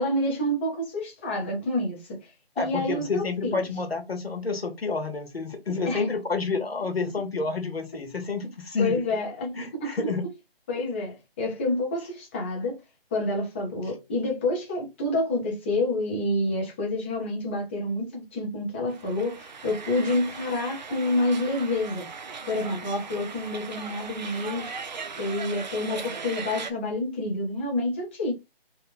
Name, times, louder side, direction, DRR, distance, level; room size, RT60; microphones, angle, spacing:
voice 1, 0.0-2.2 2.6-3.7 5.9-6.1 8.8-9.9 10.7-12.8 13.1-22.1 22.5-24.7 25.2-28.3, left 1 dB, 10° left, 0.7 m, -28 dB
voice 2, 2.6-9.0 9.5-10.2, left 4 dB, 80° left, 1.1 m, -29 dB
sound 1, 18.9-26.7, right 5 dB, 45° right, 0.4 m, -38 dB
3.3 x 2.3 x 3.4 m
figure-of-eight pair, 150°, 30 cm